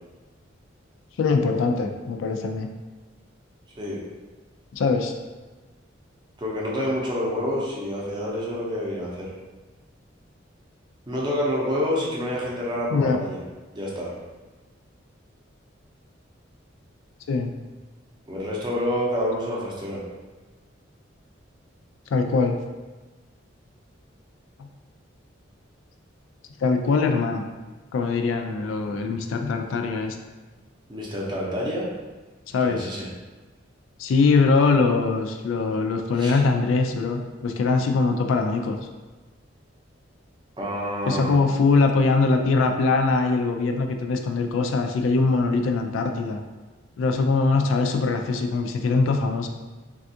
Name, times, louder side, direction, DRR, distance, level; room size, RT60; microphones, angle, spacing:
voice 1, 1.2-2.7 4.7-5.1 12.9-13.2 17.3-17.5 22.1-22.6 24.6-24.7 26.6-27.5 27.9-30.2 32.5-32.9 34.0-38.8 41.1-46.4 47.0-49.5, left 4 dB, 85° left, 5 dB, 0.3 m, -22 dB
voice 2, 6.4-9.3 11.1-13.4 13.7-14.1 18.3-20.0 30.9-31.9 32.6-33.1 36.2-36.4 40.6-41.4, equal, 25° right, -4 dB, 0.6 m, -28 dB
3.4 x 2.3 x 2.7 m, 1.3 s
head